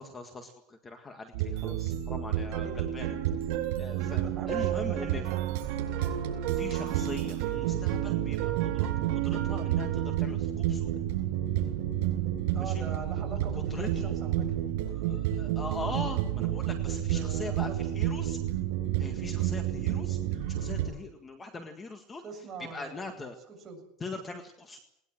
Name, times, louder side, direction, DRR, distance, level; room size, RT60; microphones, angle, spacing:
voice 1, 0.0-3.2 3.8-5.2 6.5-10.9 12.6-12.8 13.7-14.2 14.9-18.4 19.0-22.2 22.7-23.4 24.0-24.8, left 3 dB, 15° left, 6 dB, 1.8 m, -41 dB
sound 1, 1.3-20.9, right 11 dB, 70° right, 7.2 m, -30 dB
voice 2, 2.5-3.1 3.9-5.6 12.5-14.5 16.9-17.8 22.2-23.9, right 5 dB, 20° right, 1 dB, 7.3 m, -44 dB
sound 2, 2.5-10.2, right 14 dB, 55° right, 3.2 m, -36 dB
20.5 x 19.5 x 7.7 m, 0.75 s
supercardioid pair, 155°, 0 cm